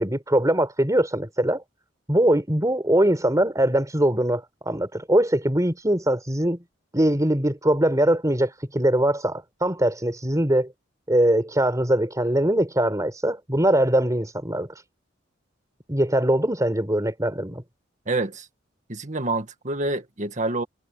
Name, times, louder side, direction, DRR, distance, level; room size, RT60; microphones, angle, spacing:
voice 1, 0.0-1.6 2.1-6.6 6.9-10.7 11.1-14.7 15.9-17.6, right 1 dB, 20° right, 4.2 m, -22 dB
voice 2, 18.1-18.5 18.9-20.6, right 2 dB, 40° right, 1.9 m, -27 dB
head